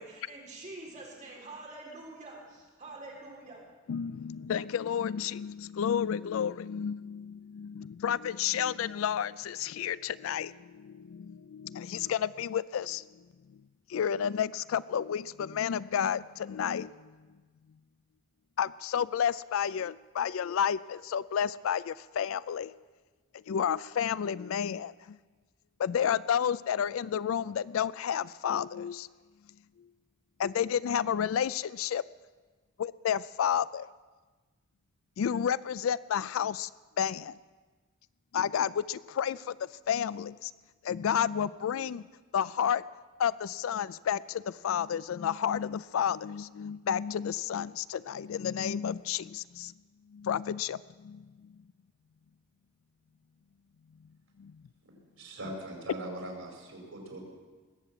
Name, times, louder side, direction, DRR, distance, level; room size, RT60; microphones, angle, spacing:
voice 1, 0.0-3.6, right 2 dB, 35° right, -2 dB, 3.9 m, -46 dB
voice 2, 3.9-13.2 13.9-17.1 18.6-22.8 23.3-25.2 25.8-29.1 30.4-32.0 32.8-33.9 35.2-36.7 37.0-37.4 38.3-40.5 40.8-42.0 42.3-42.8 43.2-49.7 50.1-51.3 54.4-54.5, left 8 dB, 75° left, 19 dB, 0.4 m, -31 dB
voice 3, 55.1-57.2, right 1 dB, 90° right, 0 dB, 5.1 m, -41 dB
20.5 x 8.2 x 7.5 m, 1.3 s
head